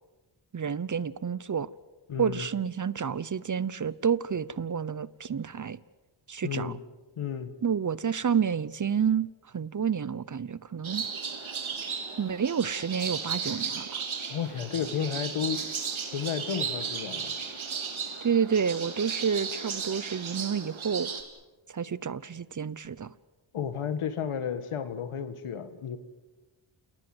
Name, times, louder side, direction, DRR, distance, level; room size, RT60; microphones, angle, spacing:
voice 1, 0.5-1.7 2.2-5.8 6.3-6.7 7.6-9.3 9.5-11.0 12.2-14.0 18.2-21.1 21.7-23.1, right 7 dB, 40° right, 0.8 m, -29 dB
voice 2, 2.1-2.5 6.4-6.8 7.2-7.5 14.3-15.6 16.1-17.3 23.5-26.0, left 7 dB, 80° left, 2.0 m, -32 dB
sound 1, 10.8-21.2, right 6 dB, 70° right, 3.2 m, -35 dB
29.0 x 18.5 x 8.0 m
cardioid pair, 65°, 49 cm